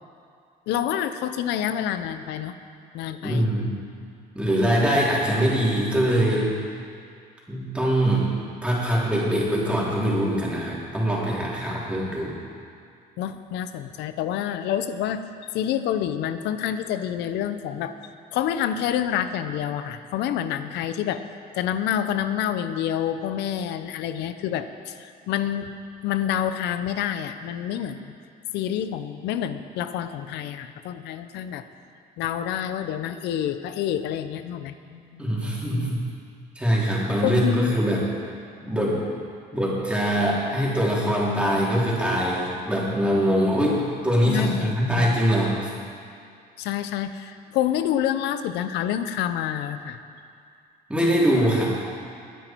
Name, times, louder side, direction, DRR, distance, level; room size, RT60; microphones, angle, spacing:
voice 1, 0.7-2.5 2.9-3.5 13.2-17.9 18.3-21.3 21.6-25.7 26.0-28.1 28.5-31.6 32.2-35.3 37.2-37.7 44.3-45.2 46.6-50.0, left 10 dB, 85° left, 10 dB, 0.8 m, -28 dB
voice 2, 3.2-3.8 4.4-6.5 7.5-8.3 8.6-12.4 35.2-36.0 36.6-38.1 38.6-39.0 39.5-45.7 50.9-51.7, equal, 5° right, -6 dB, 3.6 m, -23 dB
21.5 x 9.4 x 4.6 m, 2.3 s
cardioid pair, 110°, 17 cm